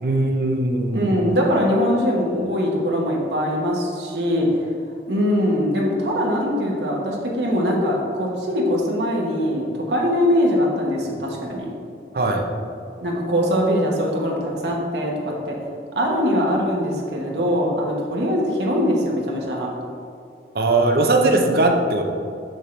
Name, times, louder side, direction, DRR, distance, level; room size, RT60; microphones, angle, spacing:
voice 1, 0.0-1.1 12.1-12.5 20.5-22.0, right 2 dB, 55° right, 2 dB, 0.7 m, -19 dB
voice 2, 0.9-4.5 5.1-11.7 13.0-15.6 15.9-19.7, equal, 75° right, -2 dB, 1.2 m, -22 dB
6.4 x 6.0 x 3.2 m, 2.4 s
head